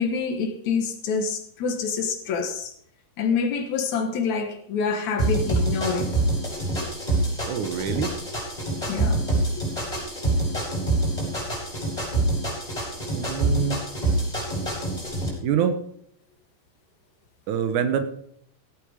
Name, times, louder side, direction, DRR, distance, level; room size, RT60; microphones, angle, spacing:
voice 1, 0.0-2.7 3.2-6.1 7.7-7.9 8.9-9.2 9.6-9.7, left 5 dB, 65° left, 2.5 m, -26 dB
sound 1, 5.2-15.3, right 2 dB, 10° left, 5.3 m, -26 dB
voice 2, 7.5-8.2 13.0-13.8 15.4-15.8 17.5-18.0, right 8 dB, 75° right, 2.5 m, -25 dB
16.5 x 8.3 x 5.1 m
omnidirectional pair, 3.7 m